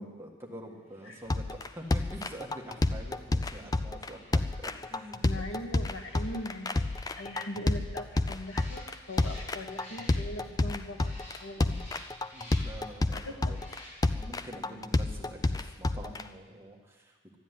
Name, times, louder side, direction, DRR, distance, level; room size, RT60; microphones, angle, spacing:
voice 1, 0.0-5.4 12.3-13.6 14.1-17.4, right 1 dB, 10° right, -1 dB, 1.7 m, -46 dB
sound 1, 0.8-10.6 10.9-12.9 13.4-14.3 14.6-14.8, equal, 35° left, 4.0 m, -53 dB
sound 2, 1.3-16.2, left 2 dB, 15° left, 0.4 m, -30 dB
voice 2, 5.2-6.8 7.2-11.1 11.4-12.0 12.6-12.7 13.1-13.3 14.7-14.8, left 1 dB, 80° left, 2 dB, 2.1 m, -40 dB
12.5 x 11.5 x 9.7 m, 1.4 s
head